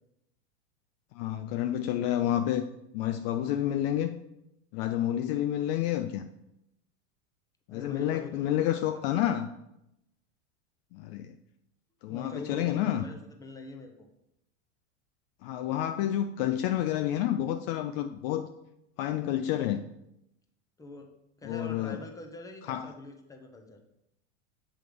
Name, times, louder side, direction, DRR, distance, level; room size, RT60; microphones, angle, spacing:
voice 1, 1.1-2.7 2.9-4.2 4.7-6.3 7.7-9.5 10.9-11.3 12.0-13.0 15.4-18.5 19.0-19.8 21.4-22.0 22.7-22.9, left 11 dB, 50° left, 8 dB, 0.4 m, -29 dB
voice 2, 7.7-9.4 12.1-14.1 20.8-21.1 21.4-23.8, left 2 dB, 10° left, 3 dB, 0.8 m, -45 dB
7.8 x 3.2 x 5.1 m, 0.84 s
hypercardioid pair, 115°, 38 cm